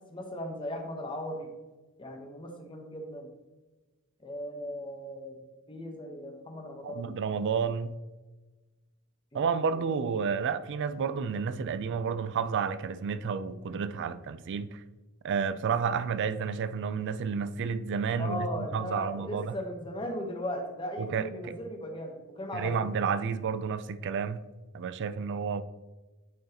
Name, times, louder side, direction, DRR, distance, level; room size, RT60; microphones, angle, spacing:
voice 1, 0.0-1.5 2.0-3.3 4.2-7.2 9.3-10.1 18.2-22.9, equal, 25° left, 1.0 m, -38 dB
voice 2, 6.8-8.0 9.3-14.8 15.2-19.6 21.0-21.6 22.5-24.4 24.7-25.6, right 6 dB, 55° right, 0.3 m, -31 dB
9.2 x 4.6 x 2.9 m
head